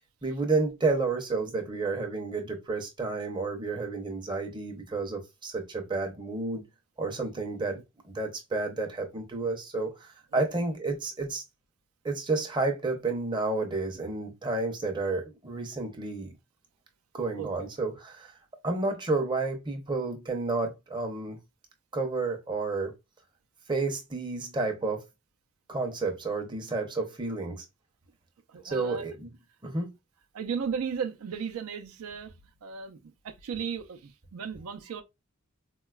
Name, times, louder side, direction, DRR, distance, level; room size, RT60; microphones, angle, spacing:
voice 1, 0.2-6.6 7.0-7.8 8.0-11.4 12.0-16.3 17.1-18.3 18.6-21.4 21.9-22.9 23.7-25.0 25.7-27.6 28.6-29.3 29.6-29.9, right 3 dB, 20° right, 0.5 m, -31 dB
voice 2, 28.5-29.1 30.3-35.0, right 6 dB, 90° right, 0.4 m, -35 dB
3.8 x 2.2 x 2.2 m
head